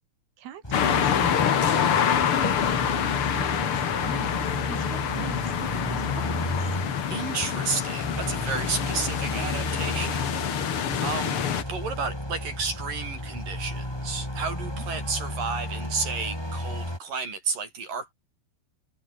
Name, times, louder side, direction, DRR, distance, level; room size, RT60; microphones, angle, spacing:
voice 1, 0.4-6.8 14.6-14.8, right 10 dB, 90° right, 4.3 m, -41 dB
sound 1, 0.6-17.0, left 1 dB, 5° left, 5.6 m, -34 dB
bird calls leaves swirl wind blows and traffic passes, 0.7-11.6, left 8 dB, 50° left, 1.9 m, -26 dB
voice 2, 7.1-10.4 10.6-11.4 11.7-18.1, right 5 dB, 60° right, 7.7 m, -32 dB
omnidirectional pair, 4.4 m